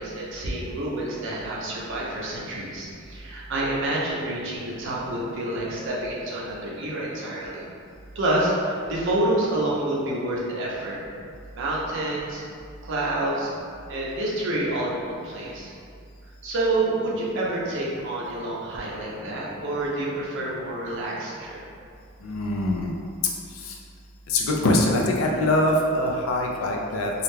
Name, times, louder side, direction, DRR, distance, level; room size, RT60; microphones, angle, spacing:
voice 1, 0.0-7.6 8.2-11.0 11.6-12.4 12.8-13.5 13.9-15.7 16.4-21.6, right 1 dB, 60° right, -5 dB, 0.6 m, -28 dB
voice 2, 22.2-22.9 23.7-23.8 24.3-27.1, left 1 dB, 75° left, 0 dB, 0.4 m, -23 dB
2.4 x 2.1 x 3.1 m, 2.3 s
head